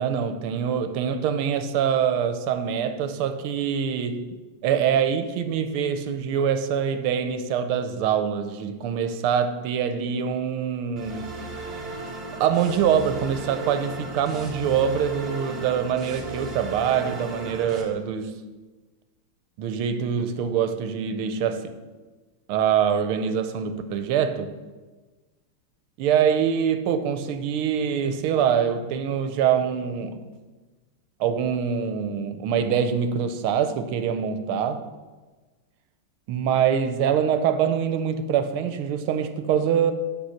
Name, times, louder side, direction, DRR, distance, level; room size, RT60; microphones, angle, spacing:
voice 1, 0.0-4.2 4.6-11.4 12.4-18.4 19.6-21.7 22.5-24.5 26.0-30.2 31.2-34.8 36.3-39.9, right 8 dB, 85° right, 1.5 m, -24 dB
sound 1, 11.0-17.8, right 2 dB, 30° right, 1.3 m, -36 dB
9.0 x 5.8 x 6.4 m
omnidirectional pair, 2.4 m